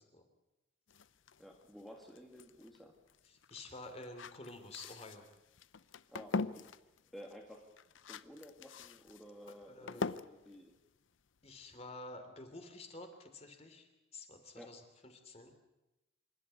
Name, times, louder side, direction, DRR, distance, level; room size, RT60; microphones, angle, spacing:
sound 1, 0.9-11.7, left 4 dB, 75° left, 0.7 m, -44 dB
voice 1, 1.4-3.0 6.1-6.7 7.1-7.7 8.1-10.7 14.5-14.8, equal, ahead, 1 dB, 1.8 m, -53 dB
voice 2, 3.2-5.2 9.7-10.1 11.4-14.8 15.2-15.5, left 2 dB, 30° left, 6 dB, 3.0 m, -50 dB
26.5 x 12.5 x 9.5 m, 1.0 s
head